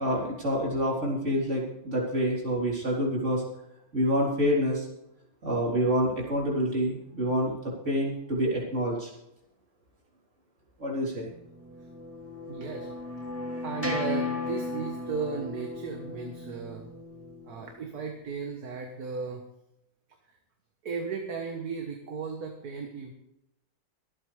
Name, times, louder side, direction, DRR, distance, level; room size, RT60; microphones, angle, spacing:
voice 1, 0.0-3.4 3.9-4.9 5.4-9.1 10.8-11.3, equal, 40° right, -2 dB, 4.0 m, -27 dB
sound 1, 11.3-17.7, left 2 dB, 5° right, 2.2 m, -36 dB
voice 2, 12.5-12.9 13.6-16.8 17.5-19.4 20.8-23.1, right 5 dB, 55° right, 3 dB, 1.8 m, -35 dB
24.0 x 8.8 x 3.4 m, 0.84 s
omnidirectional pair, 2.0 m